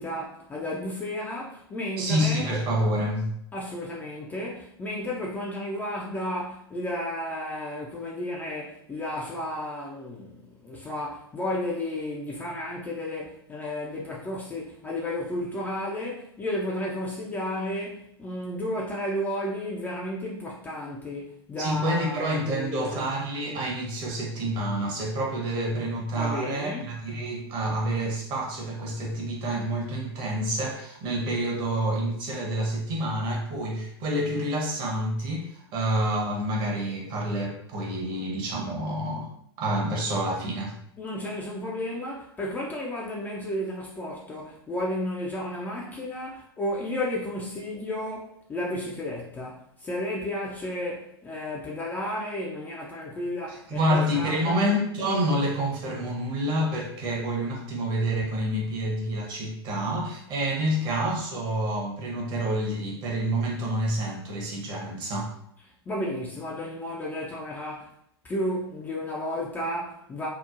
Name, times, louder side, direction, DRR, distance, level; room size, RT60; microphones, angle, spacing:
voice 1, 0.0-2.5 3.5-23.1 26.2-26.9 41.0-54.6 65.9-67.9 68.2-70.3, left 1 dB, 10° left, -3 dB, 0.4 m, -33 dB
voice 2, 2.0-3.3 21.6-39.3 39.6-40.7 53.7-65.3, right 1 dB, 35° right, -1 dB, 0.8 m, -28 dB
2.9 x 2.0 x 2.4 m, 0.72 s
figure-of-eight pair, 95°, 14 cm